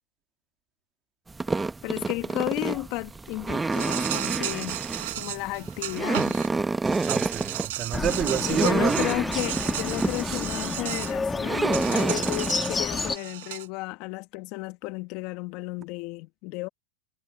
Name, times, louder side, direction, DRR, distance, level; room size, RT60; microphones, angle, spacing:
sound 1, 1.3-12.5, right 3 dB, 10° right, 1.1 m, -29 dB
voice 1, 1.8-4.8 5.1-6.4 8.5-16.7, left 22 dB, 50° left, 1.6 m, -33 dB
Insect, 3.7-6.5 6.9-11.1 11.7-13.7, right 17 dB, 70° right, 5.0 m, -34 dB
voice 2, 7.1-9.1 10.2-10.4, right 10 dB, 30° right, 2.0 m, -29 dB
Bird, 7.9-13.2, left 4 dB, 15° left, 1.9 m, -30 dB
hypercardioid pair, 115°, 0 cm